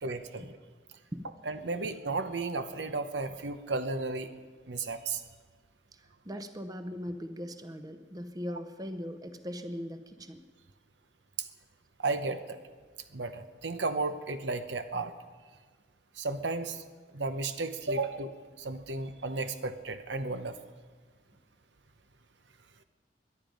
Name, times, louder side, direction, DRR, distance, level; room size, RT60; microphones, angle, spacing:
voice 1, 0.0-0.6 1.5-4.3 4.7-5.2 11.4-11.5 12.0-12.6 13.1-15.1 16.1-16.8 17.1-20.6, right 3 dB, 80° right, 9 dB, 0.9 m, -34 dB
voice 2, 6.0-10.4, equal, 20° right, 9 dB, 0.7 m, -40 dB
22.0 x 10.5 x 5.3 m, 1.5 s
head